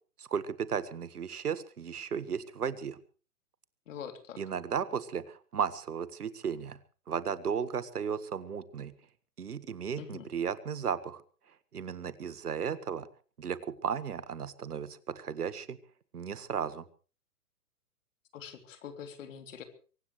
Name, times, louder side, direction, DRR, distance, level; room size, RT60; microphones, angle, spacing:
voice 1, 0.2-3.0 4.4-6.8 7.1-8.9 9.4-11.2 11.7-13.1 13.4-15.8 16.1-16.8, right 7 dB, 75° right, 15 dB, 1.7 m, -35 dB
voice 2, 3.9-4.4 10.0-10.3 18.3-19.6, left 8 dB, 55° left, 8 dB, 3.4 m, -44 dB
23.0 x 18.5 x 3.3 m, 0.39 s
figure-of-eight pair, 130°, 46 cm